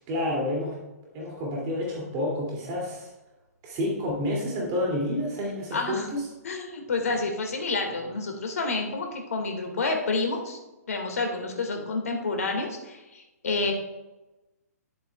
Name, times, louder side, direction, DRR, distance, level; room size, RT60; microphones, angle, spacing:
voice 1, 0.1-0.7 1.1-3.1 3.6-6.2, left 1 dB, 30° right, -3 dB, 2.5 m, -29 dB
voice 2, 5.7-6.1 6.4-10.6 10.9-13.7, left 3 dB, 65° left, 3 dB, 1.8 m, -29 dB
11.0 x 7.6 x 2.3 m, 1.0 s
figure-of-eight pair, 120°, 9 cm